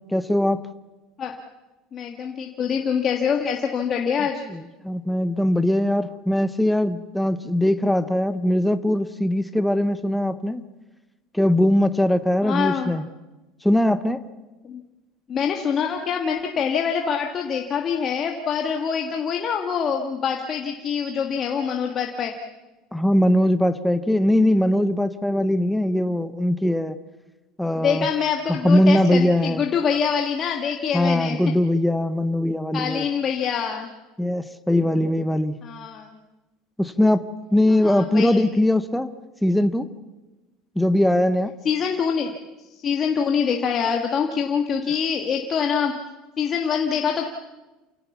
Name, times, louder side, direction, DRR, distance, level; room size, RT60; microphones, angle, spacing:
voice 1, 0.1-0.6 4.5-10.6 11.3-13.0 13.6-14.2 22.9-27.0 27.6-28.1 28.5-29.6 30.9-33.0 34.2-35.6 36.8-39.1 39.4-39.9 40.8-41.5, left 1 dB, ahead, 10 dB, 0.7 m, -21 dB
voice 2, 1.9-4.4 12.4-12.9 14.6-14.8 15.3-22.3 27.8-31.4 32.7-33.9 35.6-36.1 37.8-38.5 41.6-42.4 42.8-45.9 46.4-47.2, left 7 dB, 25° left, 2 dB, 1.5 m, -25 dB
28.5 x 17.5 x 7.2 m, 1.1 s
cardioid pair, 170°, 0 cm